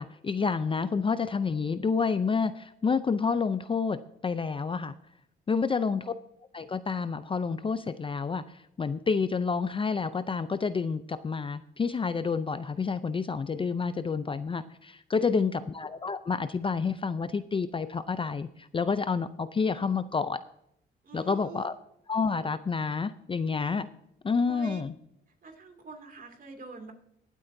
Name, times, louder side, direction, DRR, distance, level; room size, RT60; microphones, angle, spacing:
voice 1, 0.0-4.9 5.5-6.1 6.5-20.4 21.1-21.8 22.1-23.9 24.2-24.9, left 5 dB, 25° left, 12 dB, 0.5 m, -29 dB
voice 2, 5.5-6.0 15.1-15.7 21.0-21.7 24.3-24.8 25.4-26.9, right 4 dB, 45° right, 5 dB, 2.5 m, -45 dB
21.5 x 8.3 x 2.7 m, 0.76 s
cardioid pair, 90°, 20 cm